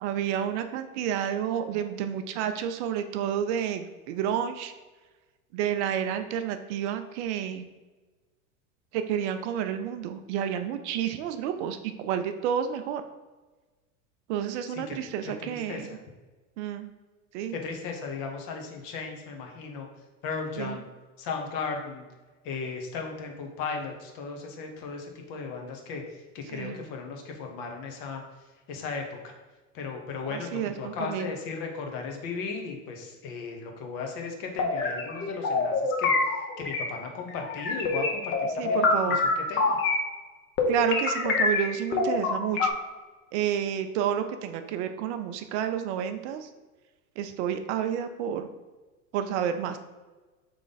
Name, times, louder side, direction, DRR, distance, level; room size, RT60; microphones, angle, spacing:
voice 1, 0.0-4.7 5.5-7.7 8.9-13.0 14.3-15.9 16.6-16.9 17.3-17.5 20.6-20.8 26.5-26.8 30.3-31.3 38.6-39.2 40.7-42.7 43.3-46.5 47.2-48.5 49.1-49.8, right 9 dB, 55° right, 9 dB, 0.5 m, -30 dB
voice 2, 14.7-15.0 15.2-15.9 17.5-19.9 20.2-20.8 21.2-22.0 22.4-26.0 26.3-28.2 28.7-29.3 29.7-36.1 36.6-39.8, left 5 dB, 50° left, 3 dB, 1.0 m, -36 dB
sound 1, 34.6-36.9 37.3-40.1 40.6-42.7, left 3 dB, 30° left, 0.7 m, -26 dB
3.8 x 3.2 x 3.9 m, 1.2 s
hypercardioid pair, 100°, 43 cm